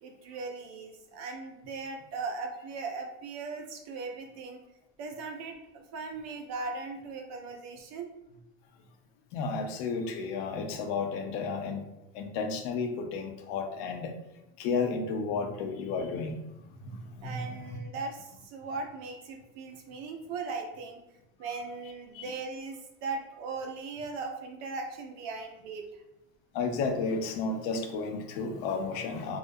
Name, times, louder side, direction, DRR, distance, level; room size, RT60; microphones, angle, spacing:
voice 1, 0.0-4.6 5.0-8.1 17.2-21.0 21.4-26.0, right 4 dB, 55° right, 3 dB, 0.5 m, -38 dB
voice 2, 9.3-14.1 14.6-16.4 16.8-17.8 21.6-21.8 22.1-22.3 26.5-29.4, left 4 dB, 65° left, 4 dB, 0.5 m, -33 dB
2.3 x 2.0 x 2.6 m, 0.91 s
supercardioid pair, 135°, 33 cm